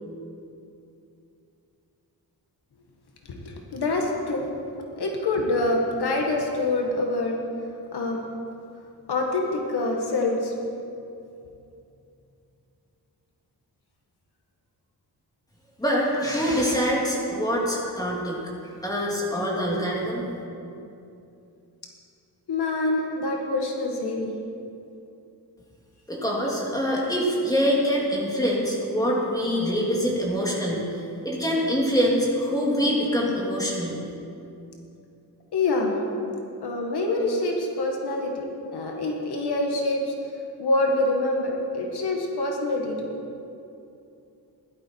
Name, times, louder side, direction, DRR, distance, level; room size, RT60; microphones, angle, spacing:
voice 1, 3.3-4.5 5.0-7.4 7.9-8.2 9.1-10.5 22.5-24.3 35.5-36.0 36.6-38.5 38.7-40.1 40.6-43.1, left 2 dB, 80° left, 1 dB, 1.7 m, -26 dB
voice 2, 15.8-18.4 18.8-20.2 26.1-34.0, equal, 10° left, -4 dB, 2.8 m, -25 dB
16.0 x 12.0 x 4.6 m, 2.7 s
wide cardioid pair, 150°, 39 cm